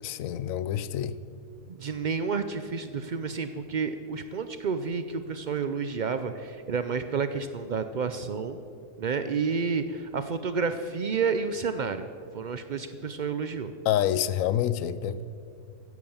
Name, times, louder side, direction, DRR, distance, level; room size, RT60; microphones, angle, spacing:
voice 1, 0.0-1.2 13.8-15.2, left 11 dB, 65° left, 16 dB, 1.0 m, -27 dB
voice 2, 1.7-8.6 9.0-12.1 12.3-13.7, right 5 dB, 75° right, 10 dB, 0.4 m, -30 dB
16.0 x 12.0 x 7.2 m, 2.4 s
omnidirectional pair, 1.6 m